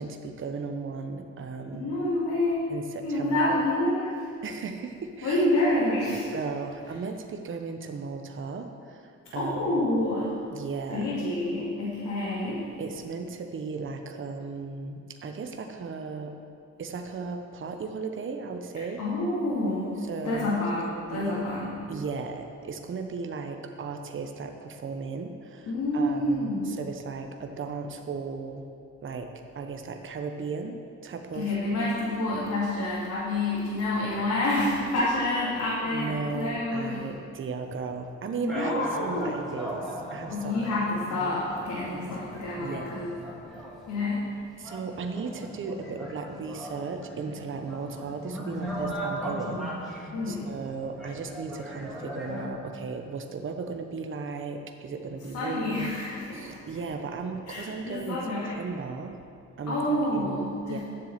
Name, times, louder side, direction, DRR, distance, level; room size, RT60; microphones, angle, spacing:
voice 1, 0.0-2.0 2.7-3.6 4.4-5.4 6.3-9.9 10.5-11.2 12.8-16.3 16.8-19.0 20.0-20.5 20.8-21.4 21.9-28.7 29.0-31.5 31.8-31.9 35.9-40.9 42.6-43.0 44.6-55.9 56.3-59.1 59.6-60.4 60.6-60.8, right 4 dB, 40° right, 5 dB, 1.0 m, -36 dB
voice 2, 1.7-2.7 3.0-4.1 5.2-6.3 9.3-10.3 10.9-12.6 19.0-20.0 20.2-21.8 25.7-26.7 31.3-37.0 38.4-39.3 40.3-43.1 43.9-44.2 50.1-50.5 55.3-56.6 57.5-58.5 59.7-60.8, left 1 dB, 75° left, -9 dB, 3.2 m, -28 dB
sound 1, 38.5-52.5, right 1 dB, ahead, 2.9 m, -38 dB
10.5 x 7.5 x 7.4 m, 2.4 s
cardioid pair, 90°, 30 cm